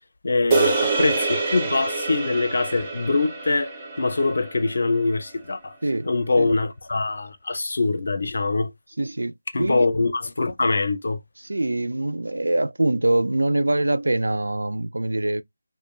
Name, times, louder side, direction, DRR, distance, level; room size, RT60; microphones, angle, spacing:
voice 1, 0.2-3.7 4.0-5.7 6.0-8.7 9.5-11.2, left 3 dB, 50° left, 0.5 m, -23 dB
sound 1, 0.5-5.0, right 3 dB, 10° right, 0.4 m, -26 dB
voice 2, 9.0-9.9 11.4-15.4, right 2 dB, 85° right, 0.3 m, -24 dB
2.4 x 2.1 x 3.1 m
figure-of-eight pair, 175°, 0 cm